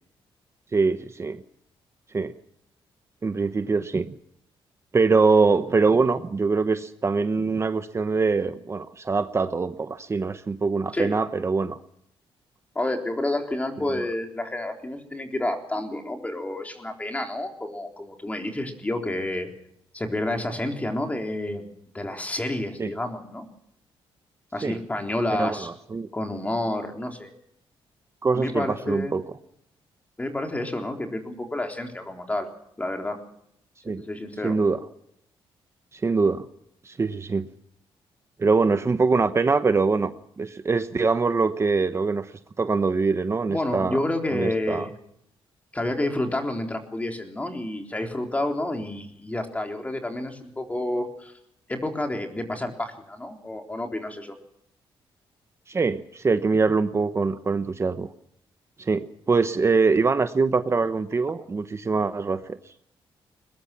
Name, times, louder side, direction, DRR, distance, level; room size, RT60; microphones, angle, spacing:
voice 1, 0.7-1.4 2.1-2.3 3.2-4.1 4.9-11.8 22.8-22.9 24.6-24.8 25.4-26.1 28.2-29.2 33.8-34.0 34.4-34.8 35.9-36.4 36.8-37.5 38.4-42.3 42.6-44.0 44.3-44.9 55.7-58.1 58.8-62.6, right 4 dB, 30° right, 10 dB, 1.0 m, -23 dB
voice 2, 12.8-19.5 19.9-21.7 21.9-23.5 24.5-25.7 26.1-27.3 28.3-29.1 30.2-32.5 32.8-33.2 33.9-34.6 43.5-44.9 45.7-51.3 51.7-54.4, left 1 dB, 15° left, 4 dB, 3.8 m, -29 dB
21.5 x 21.0 x 5.9 m, 0.73 s
cardioid pair, 120°, 10 cm